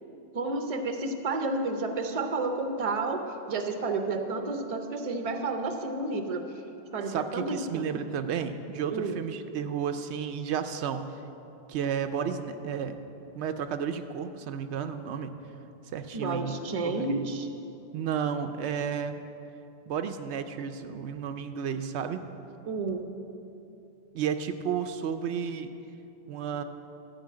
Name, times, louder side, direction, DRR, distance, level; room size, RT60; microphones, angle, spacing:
voice 1, 0.3-6.5 6.9-7.8 8.9-9.2 16.1-17.5 22.7-23.1, right 3 dB, 35° right, 6 dB, 0.8 m, -31 dB
voice 2, 7.1-11.0 11.7-13.0 13.3-15.3 15.9-16.6 16.8-17.2 17.9-19.2 19.9-22.2 24.1-25.7 26.3-26.6, right 7 dB, 80° right, 8 dB, 0.9 m, -32 dB
13.0 x 5.5 x 8.7 m, 2.9 s
omnidirectional pair, 1.1 m